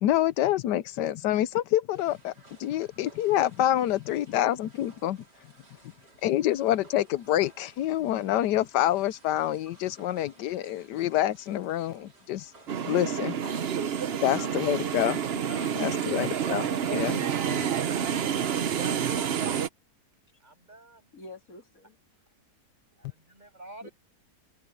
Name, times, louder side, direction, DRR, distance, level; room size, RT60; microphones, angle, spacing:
voice 1, 0.0-2.3 2.6-5.2 6.2-12.5 12.8-13.3 14.2-15.2 15.8-17.3, left 13 dB, 90° left, 1.3 m, -27 dB
sound 1, 1.9-18.0, right 2 dB, 90° right, 6.1 m, -55 dB
sound 2, 12.7-19.7, right 8 dB, 50° right, 0.8 m, -29 dB
voice 2, 14.3-14.9 15.5-16.0 17.6-18.8 21.1-22.0 23.8-23.9, left 3 dB, 55° left, 2.7 m, -48 dB
voice 3, 18.4-19.6 20.4-21.1 23.0-23.9, right 2 dB, 25° right, 7.8 m, -46 dB
omnidirectional pair, 1.8 m